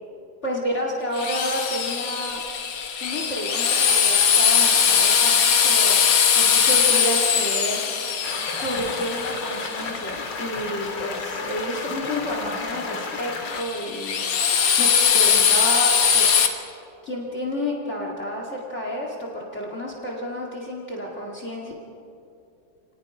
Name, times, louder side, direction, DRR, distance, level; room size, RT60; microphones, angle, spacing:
voice 1, 0.4-2.4 3.0-6.1 6.3-8.3 8.5-16.4 17.0-21.7, equal, 35° left, -1 dB, 2.5 m, -30 dB
Drill, 1.1-10.1 13.5-16.5, left 7 dB, 80° left, 2.3 m, -20 dB
sound 1, 8.2-13.6, left 4 dB, 65° left, 2.5 m, -32 dB
29.0 x 19.5 x 5.0 m, 2.7 s
omnidirectional pair, 2.2 m